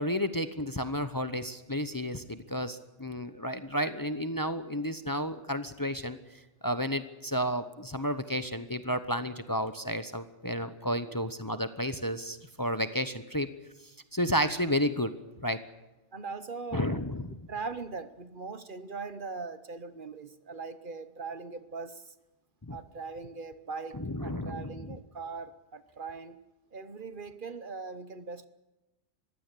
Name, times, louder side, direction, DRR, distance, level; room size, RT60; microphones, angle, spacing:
voice 1, 0.0-13.5 13.8-15.1 15.4-15.6 16.7-17.3 22.7-22.8 24.0-24.9, equal, 20° left, 10 dB, 0.9 m, -32 dB
voice 2, 16.1-16.9 17.5-22.1 22.7-26.4 26.7-28.4, right 4 dB, 50° right, 13 dB, 1.1 m, -40 dB
22.0 x 16.0 x 9.9 m, 1.0 s
omnidirectional pair, 1.2 m